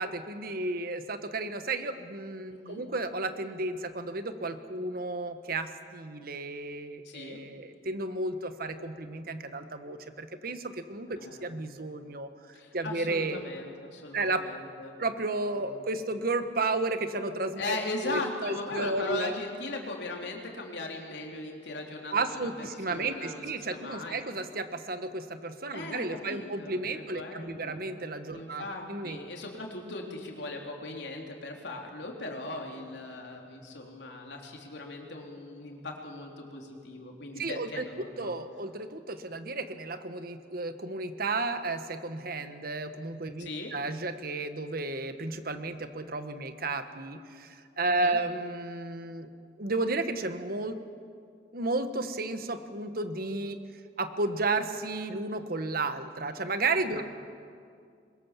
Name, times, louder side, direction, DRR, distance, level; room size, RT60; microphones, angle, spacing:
voice 1, 0.0-12.3 12.7-13.4 14.1-14.4 15.0-17.8 18.0-19.4 22.1-28.6 28.9-29.2 37.4-37.8 38.2-49.3 49.6-50.8 51.5-53.6 54.0-57.0, right 2 dB, 55° right, 9 dB, 1.4 m, -33 dB
voice 2, 2.5-2.8 7.0-7.4 11.2-11.5 12.5-14.9 15.7-15.8 17.6-22.5 22.9-24.2 25.7-27.8 28.3-38.3 43.4-43.7 47.9-48.2 56.9-57.0, left 2 dB, 75° left, 1 dB, 3.4 m, -39 dB
22.5 x 21.5 x 7.4 m, 2.3 s
head